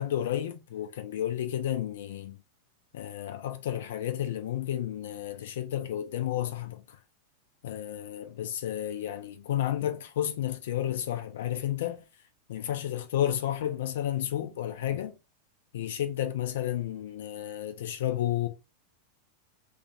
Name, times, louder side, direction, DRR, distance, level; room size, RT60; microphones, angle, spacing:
voice 1, 0.0-2.4 2.9-6.8 7.6-12.0 12.5-15.1 15.7-18.5, left 11 dB, 55° left, 0.6 m, -31 dB
3.2 x 2.5 x 3.9 m
figure-of-eight pair, 90°, 0 cm